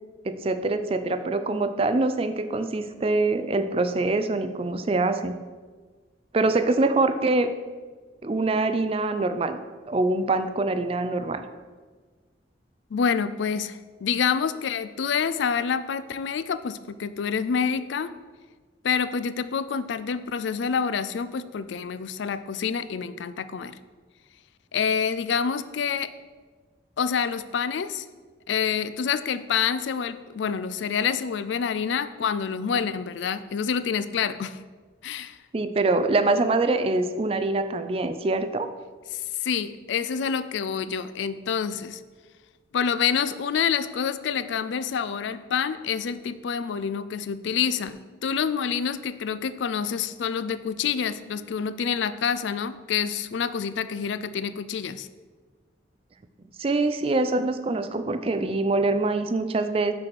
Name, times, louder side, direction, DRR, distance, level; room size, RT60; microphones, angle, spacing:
voice 1, 0.2-5.4 6.3-7.5 8.2-9.6 9.9-11.4 35.5-38.7 56.6-59.9, right 2 dB, 30° right, 10 dB, 0.4 m, -24 dB
voice 2, 12.9-18.1 18.8-23.8 24.7-26.1 27.0-28.1 28.5-34.6 35.0-35.4 39.1-42.0 42.7-55.1, left 6 dB, 70° left, 13 dB, 0.4 m, -27 dB
6.2 x 4.6 x 6.0 m, 1.4 s
head